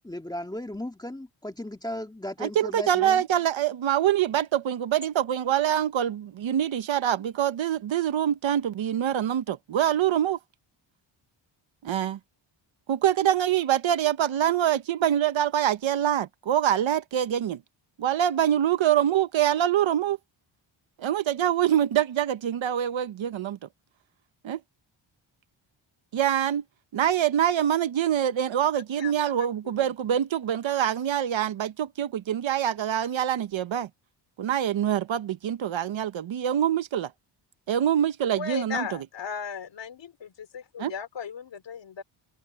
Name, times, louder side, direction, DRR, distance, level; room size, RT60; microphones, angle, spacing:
voice 1, 0.0-3.2, left 1 dB, 10° left, 2.0 m, -36 dB
voice 2, 2.4-10.4 11.8-12.2 12.9-17.6 18.0-20.2 21.0-23.6 24.4-24.6 26.1-26.6 26.9-33.9 34.4-37.1 37.7-38.9 40.8-40.9, right 10 dB, 65° right, 1.1 m, -25 dB
voice 3, 29.4-29.7 38.3-42.0, left 7 dB, 60° left, 3.2 m, -36 dB
cardioid pair, 115°, 49 cm